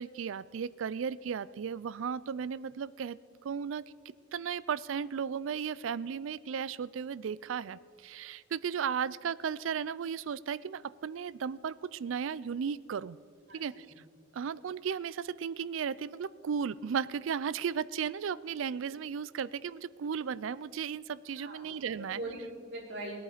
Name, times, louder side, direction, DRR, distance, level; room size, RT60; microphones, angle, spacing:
voice 1, 0.0-3.8 4.3-13.2 13.5-13.9 14.3-22.2, right 7 dB, 90° right, 19 dB, 0.4 m, -35 dB
voice 2, 13.5-13.9 21.3-23.2, right 1 dB, 70° right, -5 dB, 4.4 m, -42 dB
20.5 x 8.7 x 5.0 m, 2.2 s
head